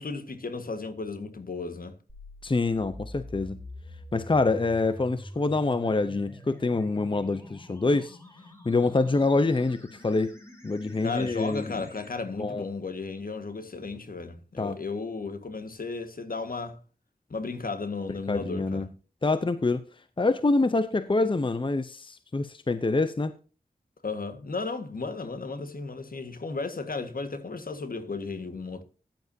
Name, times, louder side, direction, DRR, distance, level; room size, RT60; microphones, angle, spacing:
voice 1, 0.0-1.9 11.0-16.8 17.3-18.9 24.0-28.8, left 4 dB, 70° left, 1.7 m, -34 dB
sound 1, 2.1-12.1, left 1 dB, 15° left, 3.9 m, -46 dB
voice 2, 2.4-3.6 4.1-8.2 8.6-10.3 10.6-11.9 12.4-12.6 14.6-14.8 18.3-18.9 19.2-19.8 20.2-23.3, left 3 dB, 35° left, 0.8 m, -26 dB
14.5 x 10.5 x 2.8 m
wide cardioid pair, 90°, 16 cm